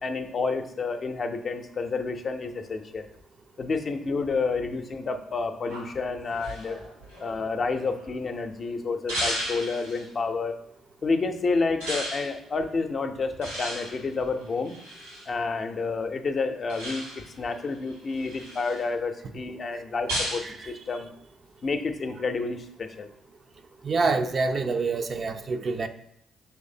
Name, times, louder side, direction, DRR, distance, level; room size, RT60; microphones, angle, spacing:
voice 1, 0.0-3.0 3.6-6.8 7.2-10.5 11.0-14.7 15.3-21.1 21.6-23.1, left 4 dB, 45° left, 7 dB, 0.5 m, -29 dB
sound 1, 5.7-8.3 9.1-10.1 11.8-12.3 13.4-15.3 16.7-17.4 17.9-18.8 20.1-20.5, equal, 90° right, 1.7 m, -34 dB
voice 2, 23.8-25.9, right 4 dB, 50° right, 7 dB, 0.4 m, -26 dB
5.7 x 3.2 x 2.7 m, 0.73 s
hypercardioid pair, 45°, 0 cm